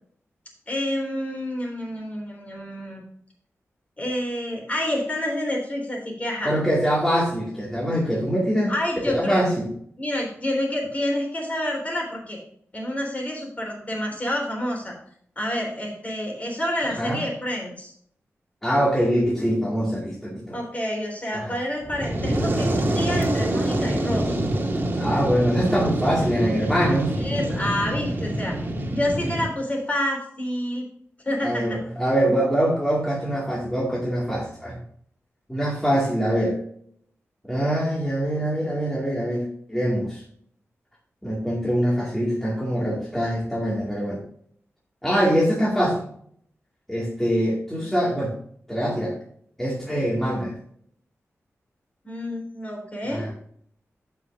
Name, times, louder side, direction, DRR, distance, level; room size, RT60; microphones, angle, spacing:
voice 1, 0.7-3.0 4.0-6.5 8.7-9.5 10.0-12.4 12.7-14.9 15.4-17.9 20.5-24.4 27.2-28.6 28.9-30.8 31.3-31.8 52.0-53.3, left 1 dB, 30° left, 0 dB, 3.6 m, -28 dB
voice 2, 6.4-8.7 9.1-9.7 17.0-17.2 18.6-20.6 21.3-21.6 24.9-27.1 31.4-34.8 35.5-36.6 37.5-40.2 41.2-44.2 45.0-46.1 46.9-48.3 48.7-49.2 49.6-50.5 53.0-53.3, equal, 5° left, -5 dB, 2.2 m, -23 dB
Fire, 21.8-29.5, right 1 dB, 40° right, 1.7 m, -25 dB
14.0 x 5.7 x 2.6 m, 0.63 s
wide cardioid pair, 130°, 5 cm